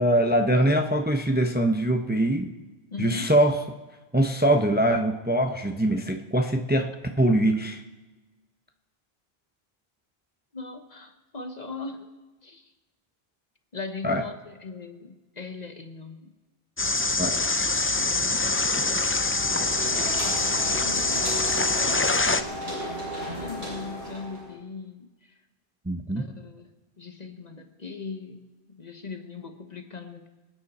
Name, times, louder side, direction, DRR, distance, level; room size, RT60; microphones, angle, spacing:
voice 1, 0.0-2.5 3.0-3.6 4.1-6.9 7.2-7.8 14.0-14.2 17.2-17.4 25.9-26.3, right 1 dB, 10° right, 4 dB, 0.8 m, -23 dB
voice 2, 2.9-3.3 10.5-12.1 12.4-12.7 13.7-16.3 17.8-18.6 19.8-20.4 20.8-22.1 23.3-25.4 26.1-26.7 27.0-30.3, left 4 dB, 45° left, 6 dB, 1.2 m, -40 dB
sound 1, 16.8-22.4, left 3 dB, 20° left, 0.3 m, -24 dB
sound 2, 19.0-24.5, equal, 65° right, 6.6 m, -35 dB
25.0 x 9.5 x 4.3 m, 1.2 s
omnidirectional pair, 1.0 m